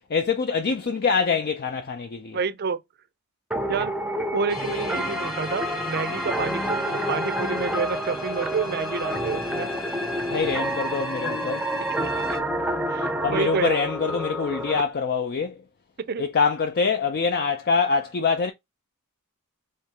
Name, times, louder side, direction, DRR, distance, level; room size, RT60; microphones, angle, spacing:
voice 1, 0.1-2.4 10.3-11.6 13.2-15.6 16.2-18.5, left 5 dB, 45° left, 0.5 m, -24 dB
voice 2, 2.3-2.8 3.7-3.9 4.3-9.7 12.9-13.9 16.0-16.2, right 5 dB, 45° right, 0.5 m, -29 dB
sound 1, 3.5-14.8, equal, 5° right, 0.6 m, -28 dB
sound 2, 4.5-12.4, left 3 dB, 70° left, 2.0 m, -39 dB
4.6 x 3.2 x 3.4 m
head